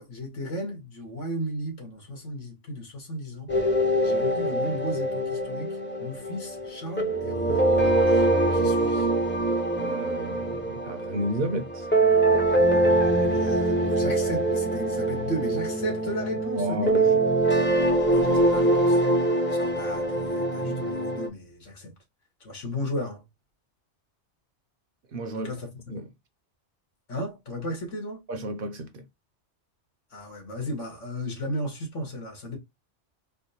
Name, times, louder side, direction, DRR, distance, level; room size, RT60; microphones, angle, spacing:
voice 1, 0.0-3.5 4.0-9.1 13.3-17.2 17.7-17.8 18.1-19.0 19.5-21.9 22.4-23.2 25.3-25.7 27.1-28.2 30.1-32.6, equal, 85° left, 1.9 m, -35 dB
sound 1, 3.5-21.3, right 2 dB, 10° left, 0.6 m, -24 dB
voice 2, 9.8-11.9 16.6-17.2 25.1-25.5 25.9-26.1 28.3-29.0, right 1 dB, 55° right, 0.7 m, -32 dB
4.3 x 2.1 x 2.7 m
omnidirectional pair, 1.2 m